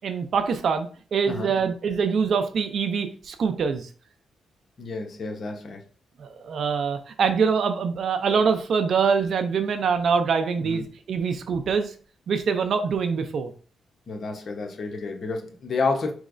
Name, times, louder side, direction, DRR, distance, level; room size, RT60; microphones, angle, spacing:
voice 1, 0.0-3.9 6.2-11.9 12.3-13.5, right 6 dB, 60° right, 0.5 m, -24 dB
voice 2, 4.8-5.8 10.6-10.8 14.1-16.1, left 3 dB, 50° left, 0.8 m, -30 dB
4.7 x 3.1 x 2.5 m
cardioid pair, 100°, 0 cm